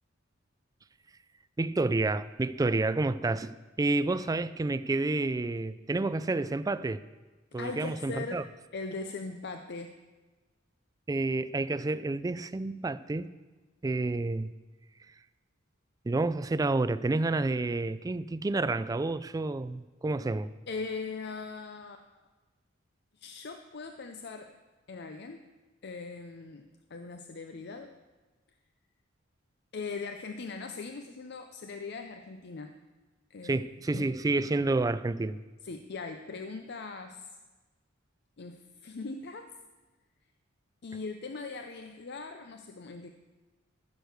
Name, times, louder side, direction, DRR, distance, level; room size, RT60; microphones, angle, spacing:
voice 1, 1.6-7.0 7.5-8.4 11.1-13.3 13.8-14.5 16.1-20.5 33.4-35.4, right 2 dB, 20° right, 0.3 m, -29 dB
voice 2, 7.5-8.4 8.7-10.0 20.7-22.0 23.2-24.5 24.9-25.4 25.8-27.9 29.7-32.7 33.3-33.6 33.9-34.0 35.6-37.4 38.4-39.6 40.8-43.1, left 4 dB, 55° left, 0.6 m, -40 dB
14.5 x 6.6 x 6.6 m
head